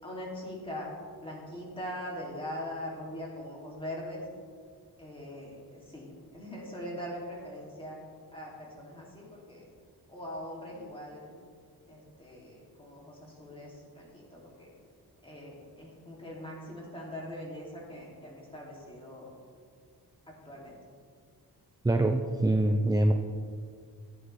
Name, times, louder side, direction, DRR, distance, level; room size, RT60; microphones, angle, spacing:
voice 1, 0.0-0.9 1.2-4.3 5.0-8.0 8.3-9.7 10.1-11.3 11.9-14.7 15.2-19.3 20.3-20.8, left 1 dB, 15° left, -4 dB, 2.7 m, -42 dB
voice 2, 21.8-23.1, right 1 dB, 10° right, 5 dB, 0.4 m, -24 dB
15.5 x 9.0 x 3.4 m, 2.1 s
wide cardioid pair, 145°, 38 cm